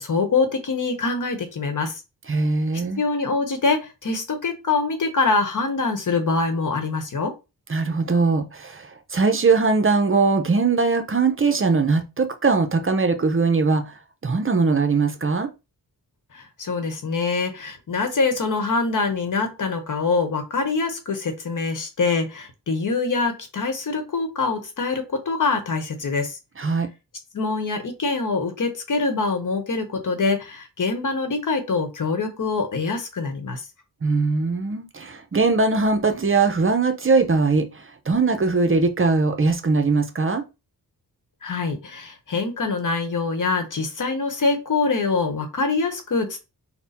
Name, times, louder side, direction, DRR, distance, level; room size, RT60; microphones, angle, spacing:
voice 1, 0.0-2.0 3.0-7.3 16.3-26.4 27.3-33.6 41.4-46.4, left 4 dB, 55° left, 1.1 m, -24 dB
voice 2, 2.3-3.0 7.7-15.5 26.6-26.9 34.0-40.4, right 4 dB, 35° right, 0.7 m, -21 dB
4.0 x 2.2 x 4.0 m
wide cardioid pair, 85°, 37 cm